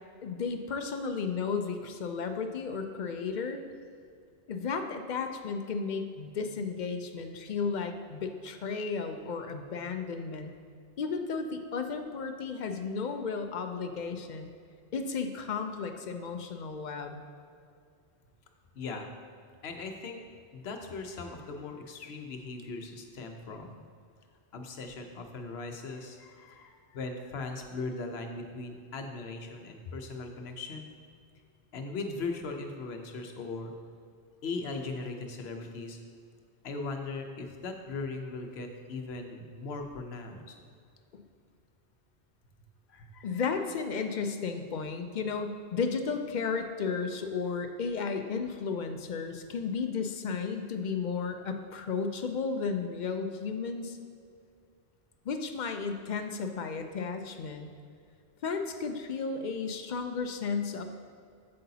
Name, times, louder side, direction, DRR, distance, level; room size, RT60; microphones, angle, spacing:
voice 1, 0.2-3.6 4.5-10.5 11.0-14.5 14.9-17.2 41.1-41.2 43.2-54.0 55.3-57.7 58.4-60.8, left 5 dB, 55° left, 6 dB, 0.6 m, -33 dB
voice 2, 18.7-19.1 19.6-20.2 20.5-23.8 24.5-30.9 31.7-33.7 34.4-36.0 36.6-40.6 42.9-43.4, left 3 dB, 75° left, 4 dB, 1.0 m, -39 dB
7.8 x 7.6 x 2.8 m, 2.3 s
omnidirectional pair, 1.1 m